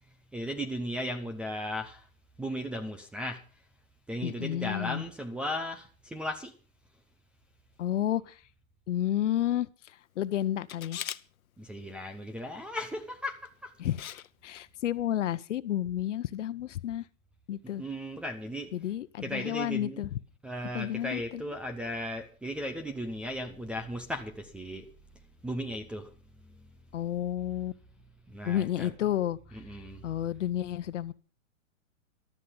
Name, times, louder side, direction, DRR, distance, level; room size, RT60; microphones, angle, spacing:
voice 1, 0.3-2.1 2.4-3.4 4.1-6.5 11.6-13.7 17.6-18.7 19.2-20.0 20.4-24.9 25.4-26.1 26.5-26.7 28.3-28.9 29.5-30.0, equal, 5° right, 0.6 m, -36 dB
voice 2, 4.2-5.0 7.8-8.4 8.9-11.0 13.8-14.0 14.4-17.0 17.5-17.8 18.7-20.2 20.7-21.5 26.9-27.7 28.4-29.4 30.0-31.1, left 12 dB, 60° left, 1.0 m, -31 dB
Camera, 10.7-11.2 13.2-13.5 14.0-14.3 14.5-14.6, left 10 dB, 90° left, 0.9 m, -39 dB
14.0 x 12.5 x 5.5 m
hypercardioid pair, 150°, 41 cm